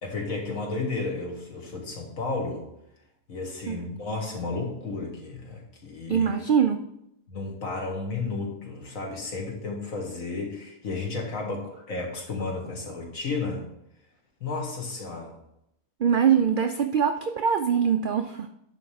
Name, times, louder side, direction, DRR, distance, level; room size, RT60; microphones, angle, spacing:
voice 1, 0.0-2.7 3.3-6.3 7.3-13.6 14.4-15.3, left 3 dB, 70° left, 0 dB, 2.1 m, -32 dB
voice 2, 6.1-6.8 16.0-18.5, right 7 dB, 75° right, 7 dB, 0.4 m, -23 dB
10.5 x 3.6 x 6.3 m, 0.79 s
omnidirectional pair, 1.5 m